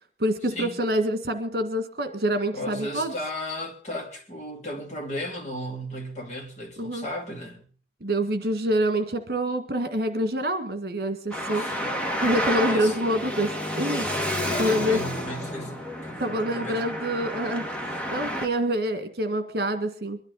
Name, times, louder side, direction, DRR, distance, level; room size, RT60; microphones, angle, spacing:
voice 1, 0.2-3.1 6.8-7.1 8.0-11.7 12.2-14.1 14.6-15.0 16.2-17.6 18.1-20.2, right 1 dB, 60° right, 1.9 m, -26 dB
voice 2, 2.5-7.6 11.5-12.0 12.6-13.0 14.5-15.7 16.0-16.8, left 1 dB, 40° left, 2.7 m, -35 dB
Traffic noise roadway noise, 11.3-18.5, equal, 5° left, 1.8 m, -30 dB
23.0 x 12.0 x 4.0 m
head